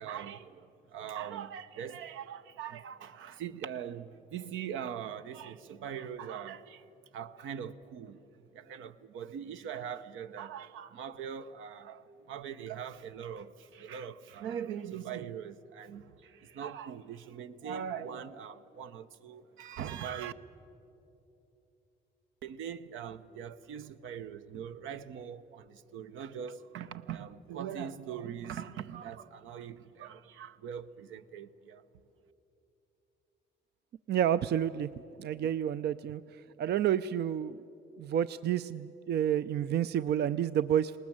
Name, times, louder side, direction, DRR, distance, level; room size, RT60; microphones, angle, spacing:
voice 1, 0.0-6.8 7.1-20.3 22.4-31.8, right 8 dB, 80° right, 0.8 m, -41 dB
voice 2, 34.1-34.9 35.2-37.6 38.0-41.0, right 10 dB, 55° right, 0.4 m, -30 dB
20.0 x 18.5 x 8.7 m
cardioid pair, 90°, 20 cm